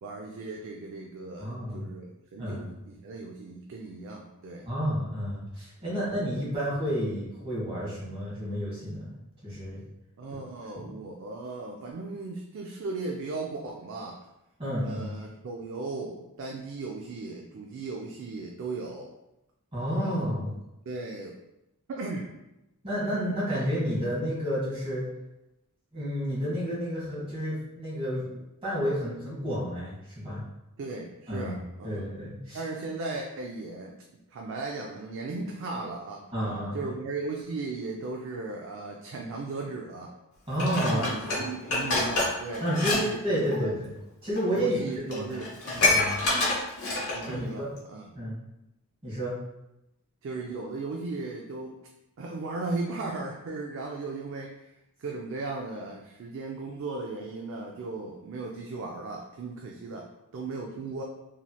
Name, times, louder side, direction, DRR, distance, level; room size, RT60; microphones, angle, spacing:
voice 1, 0.0-4.7 5.8-6.0 10.2-14.2 14.8-19.1 20.0-20.5 20.9-21.4 21.9-22.3 30.8-32.1 32.5-33.9 34.3-36.3 36.7-40.1 40.8-43.7 44.5-45.9 47.1-48.1 50.2-51.8 52.2-54.7 55.0-61.0, right 3 dB, 60° right, 0 dB, 0.3 m, -37 dB
voice 2, 1.4-1.8 2.4-2.7 4.7-9.1 9.4-9.8 10.7-10.9 14.6-15.1 19.7-20.5 22.8-25.0 25.9-28.3 28.6-30.4 31.3-31.6 31.8-32.6 36.3-36.9 40.5-41.0 42.6-43.9 44.2-44.8 45.1-45.3 45.9-46.2 47.3-47.7 48.1-48.4 49.0-49.3, equal, 25° right, -8 dB, 1.3 m, -30 dB
Dishes pots and pans, 40.6-43.0 43.3-43.5 44.4-44.5 44.8-44.9 45.1-47.3 47.8-47.9, left 2 dB, 65° left, 0.9 m, -27 dB
3.1 x 2.8 x 2.3 m, 0.92 s
head